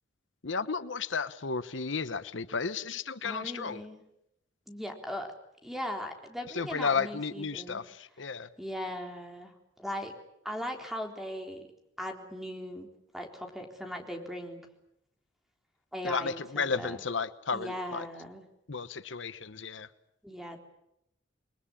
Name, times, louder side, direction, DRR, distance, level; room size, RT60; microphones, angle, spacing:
voice 1, 0.4-3.8 6.5-8.5 16.0-18.1 18.7-19.9, left 5 dB, 75° left, 13 dB, 1.0 m, -33 dB
voice 2, 3.2-4.0 4.7-5.3 5.6-7.8 8.6-9.5 9.8-10.1 10.4-11.6 12.0-12.9 13.1-14.6 15.9-17.0 17.5-18.4 20.2-20.6, equal, ahead, 3 dB, 3.8 m, -38 dB
29.0 x 22.0 x 8.6 m, 0.81 s
head